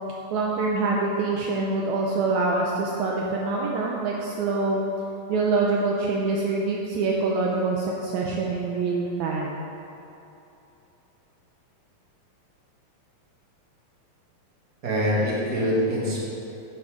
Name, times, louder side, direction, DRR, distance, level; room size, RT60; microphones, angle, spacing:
voice 1, 0.3-4.8 5.3-9.6, right 3 dB, 85° right, -2 dB, 1.7 m, -25 dB
voice 2, 14.8-16.2, equal, 35° right, -7 dB, 2.0 m, -24 dB
11.0 x 6.0 x 5.1 m, 2.9 s
omnidirectional pair, 4.2 m